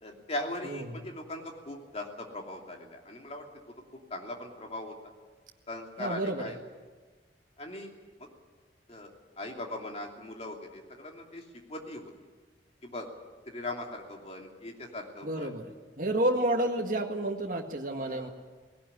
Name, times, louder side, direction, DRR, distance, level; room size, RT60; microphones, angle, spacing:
voice 1, 0.0-3.4 4.1-4.9 5.7-6.6 7.6-7.9 8.2-8.3 8.9-9.1 9.4-12.1 12.8-13.1 13.5-15.5 18.0-18.3, left 1 dB, 35° left, 2 dB, 2.9 m, -39 dB
voice 2, 0.6-1.0 6.0-6.4 15.2-18.3, right 1 dB, 50° right, 2 dB, 1.8 m, -30 dB
18.5 x 17.5 x 9.9 m, 1.4 s
head